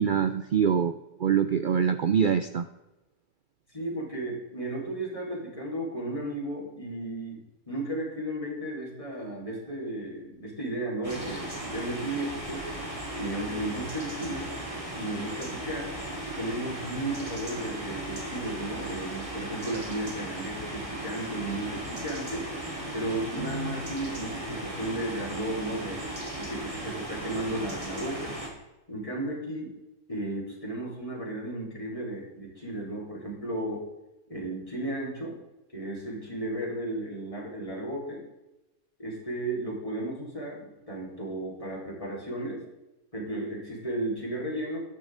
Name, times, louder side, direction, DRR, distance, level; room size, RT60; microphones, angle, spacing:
voice 1, 0.0-2.7, right 7 dB, 75° right, 10 dB, 0.4 m, -24 dB
voice 2, 3.7-7.4 7.7-12.6 13.2-14.5 14.9-15.9 16.4-22.5 22.9-26.0 26.3-28.3 28.9-29.7 30.1-33.8 34.3-35.4 35.7-38.2 39.0-42.6 43.1-44.8, right 1 dB, 20° left, -4 dB, 4.2 m, -34 dB
sound 1, 11.0-28.5, right 1 dB, 20° right, 2.7 m, -37 dB
13.5 x 10.5 x 3.8 m, 1.0 s
omnidirectional pair, 1.6 m